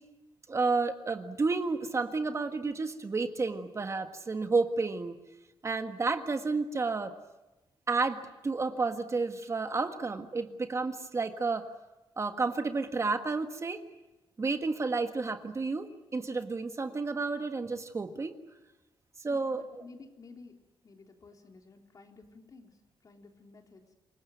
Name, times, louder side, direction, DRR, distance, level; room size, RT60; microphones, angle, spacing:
voice 1, 0.5-5.2 5.6-7.1 7.9-11.7 12.2-13.8 14.4-18.3 19.2-19.8, right 3 dB, 30° right, 8 dB, 1.5 m, -31 dB
voice 2, 19.2-24.0, left 3 dB, 40° left, 4 dB, 3.5 m, -54 dB
27.5 x 18.5 x 9.3 m, 1.1 s
cardioid pair, 110°, 9 cm